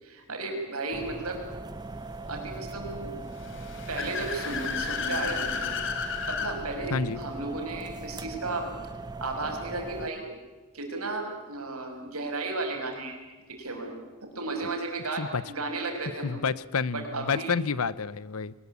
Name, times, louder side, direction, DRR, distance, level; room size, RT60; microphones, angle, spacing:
voice 1, 0.0-1.4 2.3-3.1 3.9-5.7 6.3-8.7 9.2-10.3 10.7-13.2 13.5-14.0 14.2-16.4 16.9-17.5, right 3 dB, 85° right, 3 dB, 6.0 m, -34 dB
sound 1, 0.9-10.1, right 2 dB, 20° right, 0.8 m, -40 dB
Car / Accelerating revving vroom, 3.3-6.5, left 6 dB, 60° left, 3.6 m, -32 dB
voice 2, 16.2-18.5, left 5 dB, 80° left, 18 dB, 0.8 m, -29 dB
23.5 x 20.5 x 8.5 m, 1.2 s
head